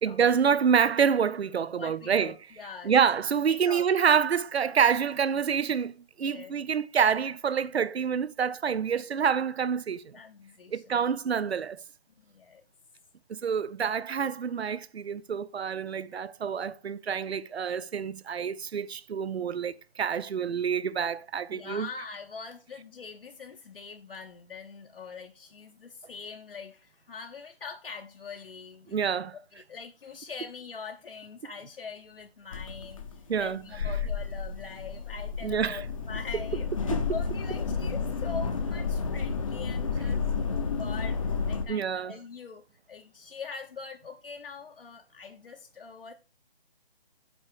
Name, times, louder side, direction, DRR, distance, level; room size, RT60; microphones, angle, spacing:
voice 1, 0.0-2.3 2.8-5.9 6.2-10.1 10.7-11.8 13.3-21.9 28.9-29.3 33.3-33.6 35.4-35.8 41.7-42.1, right 7 dB, 85° right, 0.6 m, -27 dB
voice 2, 1.7-3.0 3.5-4.1 6.2-6.5 10.1-11.1 12.3-12.6 21.5-46.1, left 5 dB, 60° left, 0.9 m, -43 dB
sound 1, 32.5-41.6, left 5 dB, 35° left, 0.7 m, -31 dB
7.9 x 4.8 x 4.6 m
figure-of-eight pair, 160°, 31 cm